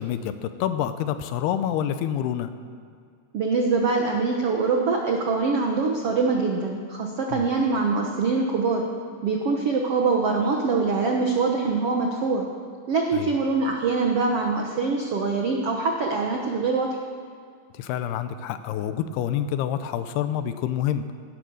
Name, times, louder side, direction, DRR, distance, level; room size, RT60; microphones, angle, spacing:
voice 1, 0.0-2.5 7.3-7.5 13.1-13.4 17.7-21.1, left 10 dB, 80° left, 11 dB, 2.8 m, -27 dB
voice 2, 3.3-8.9 9.2-12.5 12.9-16.9, right 4 dB, 85° right, 1 dB, 1.3 m, -24 dB
17.5 x 12.0 x 6.4 m, 2.2 s
omnidirectional pair, 4.6 m